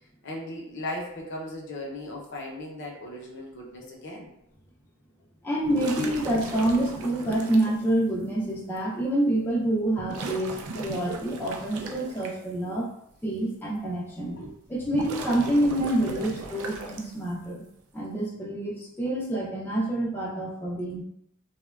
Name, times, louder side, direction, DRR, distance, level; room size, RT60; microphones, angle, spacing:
voice 1, 0.2-4.3 6.2-6.3 7.2-7.4 14.3-14.5, left 1 dB, 55° left, -1 dB, 0.6 m, -37 dB
voice 2, 5.4-12.9 13.2-17.6 17.9-21.0, right 1 dB, 10° left, -5 dB, 0.3 m, -27 dB
sound 1, 5.6-7.7 8.8-8.9 10.0-12.3 14.7-17.3, right 3 dB, 90° right, 0.4 m, -37 dB
2.8 x 2.1 x 2.3 m, 0.77 s
head